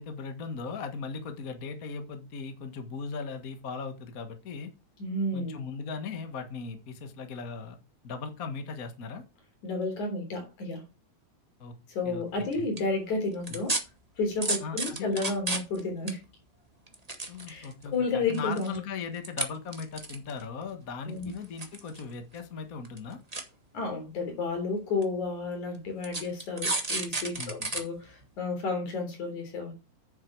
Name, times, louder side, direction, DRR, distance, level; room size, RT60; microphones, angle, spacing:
voice 1, 0.0-4.7 5.3-7.8 8.0-9.2 11.6-11.7 12.0-12.7 13.5-13.6 14.6-15.3 17.3-23.2 27.4-27.7, left 5 dB, 35° left, 1.5 m, -38 dB
voice 2, 5.0-5.6 9.6-10.8 11.9-13.8 14.2-16.2 17.5-18.8 21.1-21.3 23.7-29.7, left 3 dB, 70° left, 4.8 m, -31 dB
sound 1, 12.5-12.8 13.5-13.8 14.4-15.8 16.1-16.2 16.9-17.8 18.3-18.8 19.2-19.4 19.7-20.4 21.2-22.0 22.3-22.4 22.8-23.0 23.3-23.4 24.2-24.3 25.0-25.1 26.0-27.8 28.2-28.3, right 2 dB, 25° right, 0.8 m, -31 dB
9.3 x 7.4 x 4.7 m
omnidirectional pair, 3.5 m